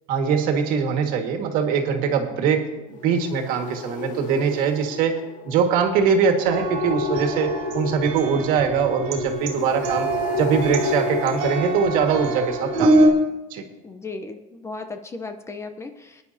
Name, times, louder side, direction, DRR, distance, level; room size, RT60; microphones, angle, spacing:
voice 1, 0.1-5.2 5.5-10.1 10.3-13.0 13.5-13.6, right 6 dB, 55° right, 4 dB, 1.9 m, -22 dB
sound 1, 2.9-12.8, left 5 dB, 50° left, 0.8 m, -31 dB
sound 2, 6.4-13.1, right 2 dB, 85° right, 2.0 m, -25 dB
voice 2, 13.8-16.2, left 3 dB, 15° left, 7 dB, 0.8 m, -36 dB
20.5 x 10.5 x 2.8 m, 1.1 s
supercardioid pair, 135°, 17 cm